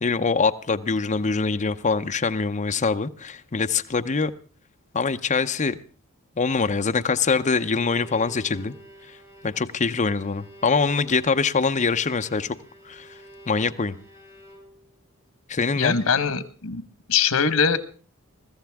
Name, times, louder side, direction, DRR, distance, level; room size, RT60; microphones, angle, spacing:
voice 1, 0.0-4.3 4.9-5.8 6.4-8.7 9.4-12.6 12.8-13.2 13.5-14.0 15.5-16.0, left 4 dB, 35° left, 0.7 m, -24 dB
Bowed string instrument, 7.2-15.0, right 1 dB, 15° right, 5.8 m, -48 dB
voice 2, 15.8-16.8 17.1-17.8, left 6 dB, 85° left, 1.2 m, -22 dB
22.5 x 14.0 x 3.5 m
head